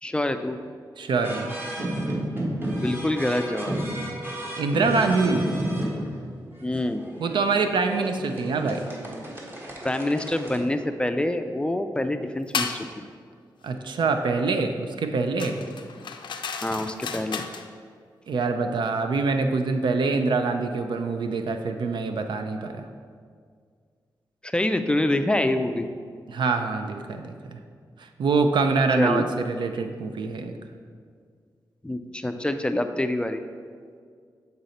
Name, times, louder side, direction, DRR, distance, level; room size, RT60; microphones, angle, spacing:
voice 1, 0.0-0.6 2.7-3.8 6.6-7.0 9.8-13.1 16.6-17.4 24.4-25.9 28.9-29.3 31.8-33.4, left 1 dB, 15° left, 8 dB, 0.3 m, -26 dB
voice 2, 1.0-1.5 4.6-5.5 7.2-8.9 13.6-15.6 18.3-22.8 26.3-27.6 28.2-30.5, right 4 dB, 80° right, 6 dB, 0.5 m, -25 dB
sound 1, 1.1-10.6, right 1 dB, 30° right, 1.3 m, -32 dB
sound 2, 12.5-12.8 15.4-17.7, left 6 dB, 90° left, 0.4 m, -32 dB
7.7 x 4.0 x 4.2 m, 2.1 s
wide cardioid pair, 85°, 8 cm